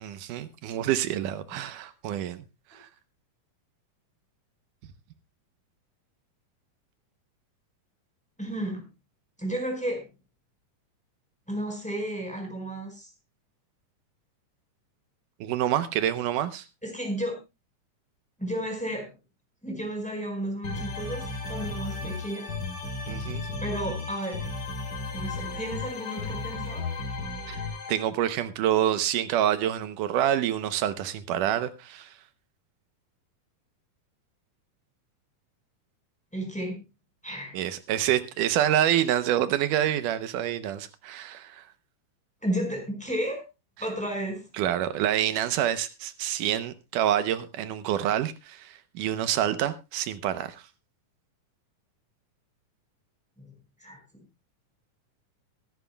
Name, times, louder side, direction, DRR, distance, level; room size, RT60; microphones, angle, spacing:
voice 1, 0.0-2.5 2.7-2.9 15.4-16.7 23.1-23.5 27.5-27.6 27.9-32.2 37.5-41.6 44.5-50.6, right 11 dB, 85° right, 2.4 m, -27 dB
voice 2, 8.4-8.9 9.4-10.1 11.5-13.1 16.8-17.4 18.4-19.1 19.6-22.5 23.6-24.4 25.1-26.8 36.3-36.8 37.2-37.6 42.4-43.4 43.8-44.4 53.4-53.5 53.8-54.0, right 1 dB, ahead, 4.7 m, -32 dB
sound 1, 20.6-28.0, left 3 dB, 45° left, 4.2 m, -34 dB
23.0 x 11.0 x 2.2 m
omnidirectional pair, 3.7 m